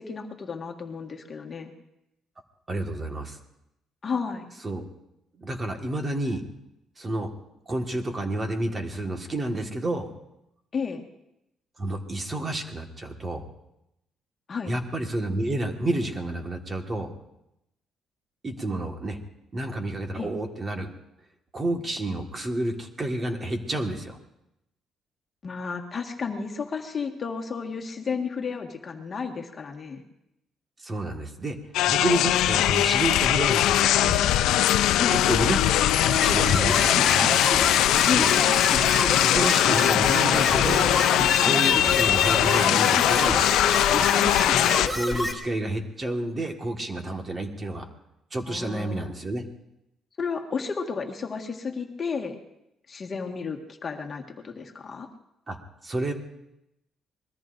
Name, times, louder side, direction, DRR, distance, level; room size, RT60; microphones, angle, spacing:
voice 1, 0.0-1.7 4.0-4.5 10.7-11.0 14.5-14.7 20.1-20.3 25.4-30.0 35.0-35.2 38.1-38.5 48.5-49.1 50.2-52.4 52.9-55.1, left 5 dB, 35° left, 2 dB, 1.6 m, -32 dB
voice 2, 2.7-3.4 4.6-4.8 5.4-6.4 7.0-7.3 7.7-10.1 11.8-13.4 14.7-17.1 18.4-19.2 19.5-20.9 21.5-24.2 30.8-31.6 31.9-34.3 35.1-35.7 36.1-37.4 39.0-40.9 41.4-43.4 44.8-47.9 48.3-49.4 55.5-55.6 55.8-56.1, right 1 dB, 25° right, 3 dB, 1.6 m, -30 dB
sound 1, 31.7-44.9, left 12 dB, 90° left, 0.5 m, -21 dB
sound 2, 36.0-45.3, left 1 dB, 5° right, 2.4 m, -29 dB
26.0 x 21.0 x 2.6 m, 0.84 s
cardioid pair, 140°, 0 cm